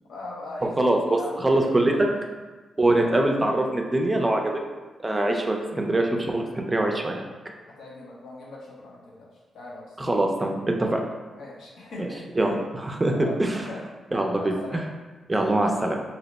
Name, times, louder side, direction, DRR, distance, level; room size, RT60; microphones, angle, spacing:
voice 1, 0.1-0.8 1.0-2.0 2.9-3.1 7.8-9.3 9.5-10.0 11.3-12.6 13.0-13.8 14.4-14.8, left 2 dB, 85° left, -4 dB, 0.8 m, -39 dB
voice 2, 0.8-2.1 2.8-4.6 5.0-7.2 10.0-11.0 12.0-12.1 12.3-13.1 13.4-13.6 14.1-14.8 15.3-16.0, right 1 dB, 20° right, 2 dB, 0.4 m, -23 dB
2.7 x 2.1 x 4.0 m, 1.3 s
cardioid pair, 95°, 0 cm